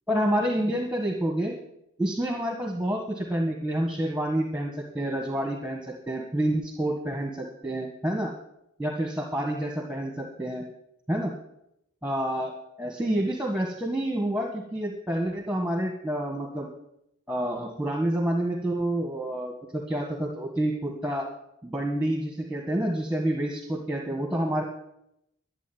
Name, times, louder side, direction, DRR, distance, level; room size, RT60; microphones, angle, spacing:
voice 1, 0.1-1.5 2.0-8.3 8.8-10.6 11.1-11.3 12.0-12.5 12.8-16.7 17.3-21.3 21.6-24.6, right 1 dB, 5° right, 0 dB, 1.5 m, -28 dB
12.5 x 7.6 x 9.3 m, 0.81 s
head